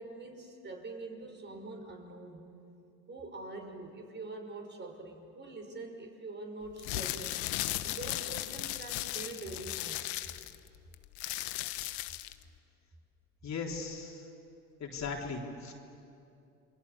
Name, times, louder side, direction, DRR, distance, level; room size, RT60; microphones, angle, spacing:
voice 1, 0.0-2.4 3.1-7.4 7.8-10.1, right 2 dB, 30° right, 3 dB, 5.8 m, -44 dB
sound 1, 6.7-12.4, left 16 dB, 75° left, 1.1 m, -36 dB
voice 2, 13.4-14.3 14.8-15.7, left 4 dB, 50° left, 0 dB, 3.9 m, -38 dB
28.0 x 23.5 x 8.4 m, 2.7 s
supercardioid pair, 80°, 36 cm